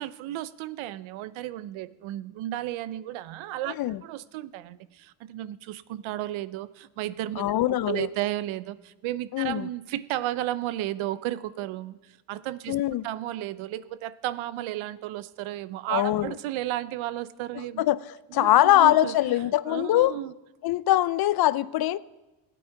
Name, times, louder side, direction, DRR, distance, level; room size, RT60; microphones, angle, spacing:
voice 1, 0.0-3.7 4.0-7.5 7.9-12.8 13.0-17.8 18.4-20.3, right 14 dB, 80° right, 16 dB, 0.7 m, -33 dB
voice 2, 7.4-8.1 9.3-9.7 12.7-13.0 15.9-16.3 17.6-18.0 18.3-20.2 20.6-22.0, left 14 dB, 50° left, 18 dB, 0.5 m, -22 dB
16.5 x 9.4 x 4.6 m, 1.1 s
cardioid pair, 100°, 47 cm